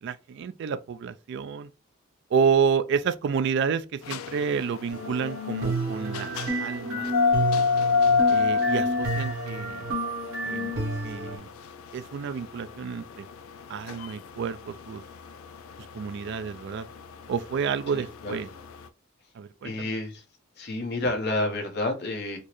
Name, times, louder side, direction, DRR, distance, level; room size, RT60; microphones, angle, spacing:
voice 1, 0.0-1.7 2.3-6.3 6.6-7.1 8.3-9.9 10.4-10.7 11.0-11.5 11.9-13.2 13.7-15.0 15.9-16.9 17.3-18.5 19.4-19.9, right 6 dB, 55° right, 0.3 m, -29 dB
sound 1, 4.0-18.8, left 5 dB, 80° left, 0.3 m, -28 dB
sound 2, 4.9-11.4, right 2 dB, 80° right, 1.5 m, -31 dB
voice 2, 17.9-18.4 19.6-20.2 20.6-22.4, left 2 dB, 55° left, 0.9 m, -30 dB
4.3 x 2.1 x 2.9 m
head